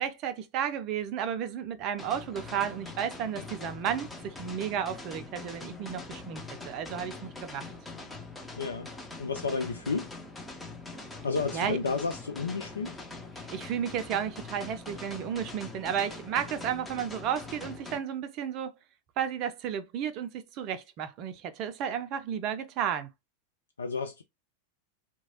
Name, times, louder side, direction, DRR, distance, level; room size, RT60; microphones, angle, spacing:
voice 1, 0.0-7.7 11.5-11.8 13.4-18.7 19.2-23.1, right 9 dB, 40° right, 0.5 m, -33 dB
sound 1, 2.0-18.0, left 3 dB, 10° left, 0.7 m, -43 dB
voice 2, 8.6-8.9 9.2-10.1 11.2-13.0 23.8-24.2, left 4 dB, 70° left, 0.3 m, -31 dB
2.9 x 2.2 x 2.8 m
figure-of-eight pair, 90°, 0 cm